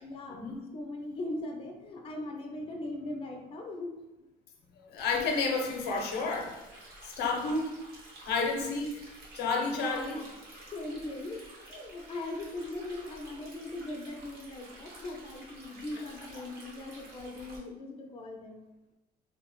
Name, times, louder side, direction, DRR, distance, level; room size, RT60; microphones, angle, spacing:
voice 1, 0.0-0.4 0.7-3.9 7.2-7.6 9.8-10.3 10.7-18.6, left 2 dB, 35° left, 2 dB, 0.4 m, -40 dB
voice 2, 4.8-6.5 7.0-7.8 8.2-9.0 9.3-10.2 16.3-16.4, left 3 dB, 80° left, 2 dB, 0.6 m, -31 dB
Stream, 5.0-17.6, right 1 dB, 65° right, 1.0 m, -51 dB
3.2 x 2.0 x 2.9 m, 0.99 s
cardioid pair, 110°, 17 cm